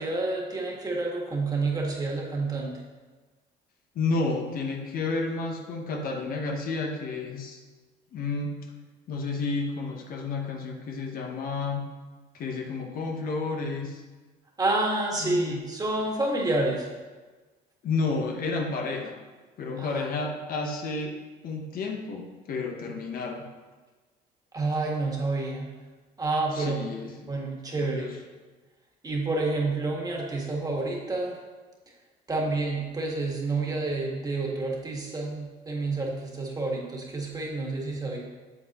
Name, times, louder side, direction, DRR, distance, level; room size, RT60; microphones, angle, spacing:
voice 1, 0.0-2.7 14.6-16.9 19.8-20.1 24.5-25.7 26.2-26.9 27.3-28.0 29.0-31.4 32.3-38.2, right 2 dB, 20° right, -2 dB, 1.7 m, -29 dB
voice 2, 3.9-7.6 8.1-8.7 9.1-11.8 12.3-14.0 15.2-15.6 17.8-19.1 19.6-23.5 26.5-27.2 27.8-28.2, left 3 dB, 55° left, 2 dB, 1.0 m, -31 dB
8.3 x 7.2 x 3.0 m, 1.3 s
cardioid pair, 110°, 17 cm